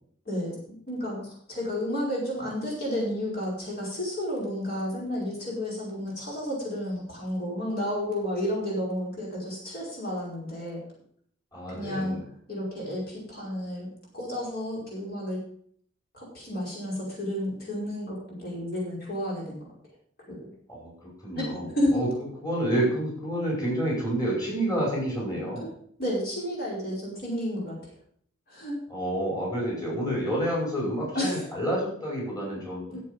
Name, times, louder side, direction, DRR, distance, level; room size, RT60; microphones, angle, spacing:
voice 1, 0.3-0.6 0.9-10.8 11.7-12.2 12.5-13.9 14.1-15.4 16.1-19.6 20.3-20.5 21.4-22.0 25.6-25.7 26.0-27.8 28.5-28.8 31.1-31.4 32.9-33.0, left 1 dB, 50° left, -4 dB, 5.2 m, -31 dB
voice 2, 11.5-12.2 20.7-22.1 22.4-25.7 28.9-32.8, right 1 dB, 20° left, -4 dB, 5.4 m, -29 dB
14.0 x 7.9 x 5.3 m, 0.62 s
head